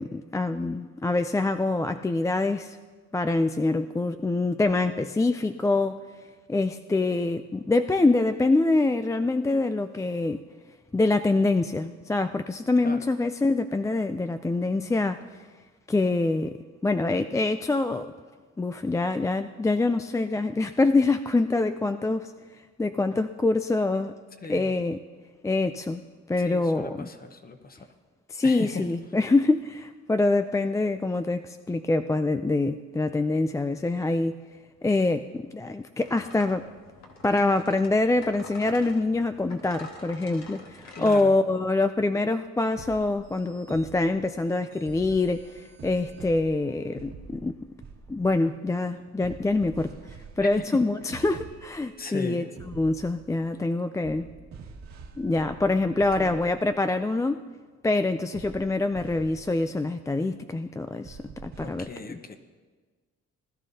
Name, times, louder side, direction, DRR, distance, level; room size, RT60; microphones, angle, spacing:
voice 1, 0.0-2.8 3.1-6.0 6.5-10.4 10.9-15.2 15.9-16.6 16.8-18.1 18.6-22.3 22.8-24.1 24.5-25.0 25.4-26.0 26.3-27.1 28.3-34.3 34.8-36.7 37.2-47.6 48.1-49.9 50.4-54.3 55.2-57.4 57.8-62.2, left 2 dB, 10° left, 9 dB, 0.3 m, -25 dB
voice 2, 26.4-27.9 28.4-28.9 41.0-41.3 50.4-50.7 52.0-52.5 56.1-56.4 61.6-62.4, left 3 dB, 30° left, 8 dB, 1.1 m, -37 dB
sound 1, 36.0-41.2, left 3 dB, 65° left, 1.7 m, -46 dB
sound 2, 42.6-53.7 54.0-56.8 58.3-59.7 61.0-61.8, right 4 dB, 65° right, 1.8 m, -46 dB
20.0 x 12.0 x 2.8 m, 1.4 s
cardioid pair, 90°, 30 cm